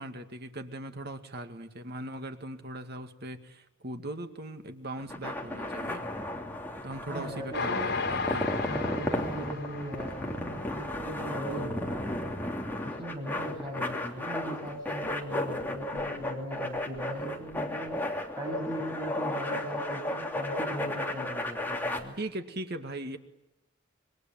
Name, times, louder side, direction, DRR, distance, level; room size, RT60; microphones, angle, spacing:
voice 1, 0.0-6.0 6.8-8.5 22.2-23.2, right 1 dB, 50° right, 7 dB, 2.1 m, -39 dB
sound 1, 5.0-22.0, left 1 dB, 10° left, 3.1 m, -34 dB
voice 2, 7.1-7.9 8.6-12.3 12.8-18.0 18.3-22.1, equal, 20° right, -1 dB, 7.7 m, -38 dB
Train, 7.5-11.0 11.5-11.6 11.9-12.0, left 4 dB, 50° left, 3.9 m, -35 dB
26.5 x 24.0 x 9.1 m, 0.93 s
head